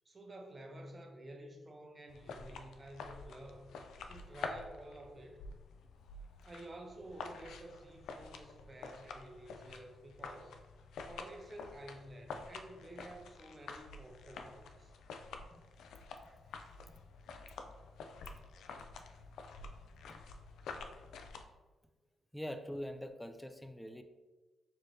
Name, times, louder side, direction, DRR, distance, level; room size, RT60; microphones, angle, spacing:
voice 1, 0.0-3.7 4.1-5.4 6.4-10.6 11.0-14.9, right 1 dB, 30° right, 2 dB, 0.7 m, -51 dB
sound 1, 2.1-21.4, left 4 dB, 85° left, 0.3 m, -49 dB
voice 2, 22.3-24.0, equal, 5° left, 7 dB, 0.4 m, -43 dB
4.4 x 2.7 x 3.1 m, 1.3 s
cardioid pair, 75°, 0 cm